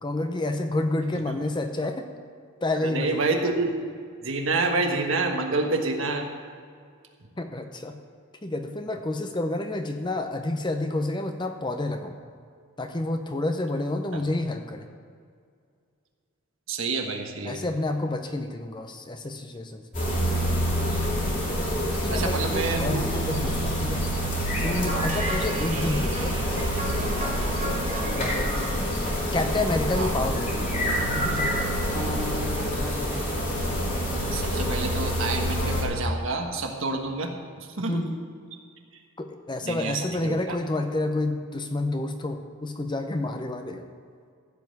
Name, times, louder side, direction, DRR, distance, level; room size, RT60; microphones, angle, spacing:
voice 1, 0.0-2.1 2.6-3.2 7.4-8.0 8.4-12.1 12.8-14.9 17.4-19.8 21.9-24.0 24.6-26.4 27.2-27.6 28.1-28.5 29.3-30.7 31.1-31.7 37.9-38.1 39.2-43.8, left 2 dB, 20° left, 6 dB, 0.6 m, -29 dB
voice 2, 2.8-3.7 4.2-6.2 14.1-14.2 16.7-17.7 22.1-23.1 24.9-25.1 29.9-30.2 32.4-32.8 34.3-37.3 37.8-38.0 39.6-40.6, right 3 dB, 60° right, 3 dB, 1.3 m, -28 dB
sound 1, 19.9-35.8, equal, 35° left, 2.8 m, -27 dB
sound 2, 24.9-29.9, right 1 dB, 30° right, 1.3 m, -36 dB
15.0 x 5.5 x 7.8 m, 2.2 s
head